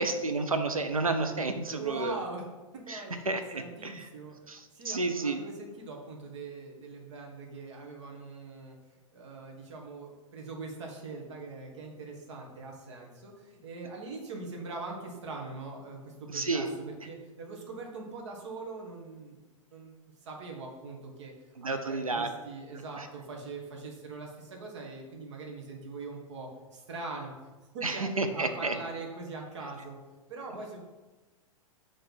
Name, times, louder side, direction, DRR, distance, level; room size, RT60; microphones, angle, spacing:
voice 1, 0.0-2.1 2.9-4.0 4.5-5.4 16.3-16.7 21.6-22.3 23.0-23.1 27.8-28.7, right 3 dB, 85° right, 7 dB, 0.6 m, -31 dB
voice 2, 1.7-2.4 2.9-4.3 4.7-8.8 9.1-19.4 19.7-19.9 20.2-21.3 21.6-27.3 27.7-28.1 28.3-30.0 30.3-30.8, right 3 dB, 55° right, 0 dB, 1.4 m, -42 dB
6.8 x 3.3 x 5.8 m, 1.2 s
figure-of-eight pair, 100°, 18 cm